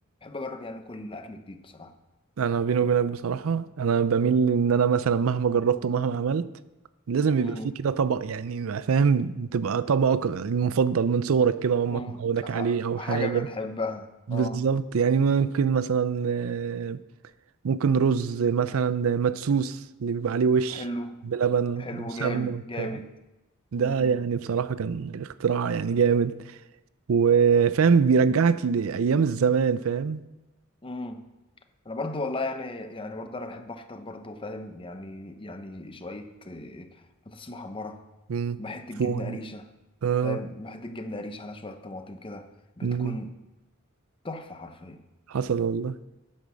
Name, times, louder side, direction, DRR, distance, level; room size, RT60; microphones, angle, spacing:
voice 1, 0.2-1.9 7.3-7.8 11.9-14.6 18.7-18.8 20.7-21.1 21.8-23.1 23.8-24.1 30.8-31.2 31.8-38.0 38.6-39.7 40.2-42.5 42.8-43.4 44.2-45.0, left 2 dB, 25° left, 0.8 m, -36 dB
voice 2, 2.4-6.5 7.1-13.5 14.3-17.0 17.6-20.8 21.2-22.9 23.7-26.3 27.1-30.2 38.3-38.6 39.0-39.4 40.0-40.4 42.8-43.2 45.3-46.0, right 6 dB, 70° right, 0.4 m, -24 dB
9.3 x 9.0 x 6.3 m
head